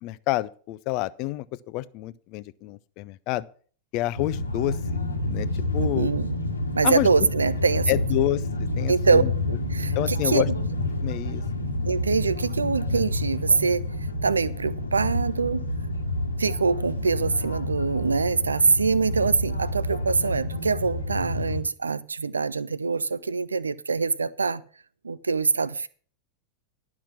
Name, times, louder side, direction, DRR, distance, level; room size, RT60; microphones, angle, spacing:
voice 1, 0.0-3.4 3.9-5.5 5.7-6.1 6.8-7.1 7.9-9.3 10.0-10.5 11.0-11.4, left 17 dB, 40° left, 17 dB, 0.6 m, -28 dB
sound 1, 4.2-21.6, left 1 dB, 80° left, 1.4 m, -29 dB
voice 2, 5.8-6.4 6.8-7.9 8.9-9.2 9.5-10.4 11.9-13.8 14.2-15.6 16.4-24.6 25.0-25.9, right 4 dB, 75° right, 19 dB, 0.5 m, -24 dB
11.5 x 6.0 x 7.3 m, 0.43 s
figure-of-eight pair, 90°, 0 cm